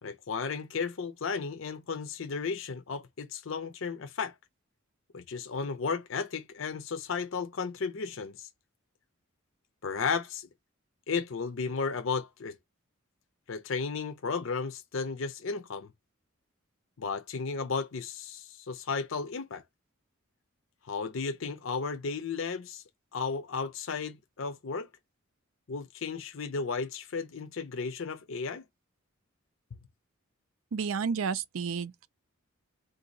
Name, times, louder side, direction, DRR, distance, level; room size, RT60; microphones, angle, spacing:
voice 1, 0.0-4.3 5.1-8.5 9.8-10.5 11.1-12.6 13.5-15.9 17.0-19.6 20.9-22.8 23.1-24.9 25.7-28.6, left 5 dB, 65° left, 0.6 m, -34 dB
voice 2, 30.7-32.1, right 6 dB, 75° right, 0.4 m, -31 dB
3.8 x 2.7 x 3.9 m
head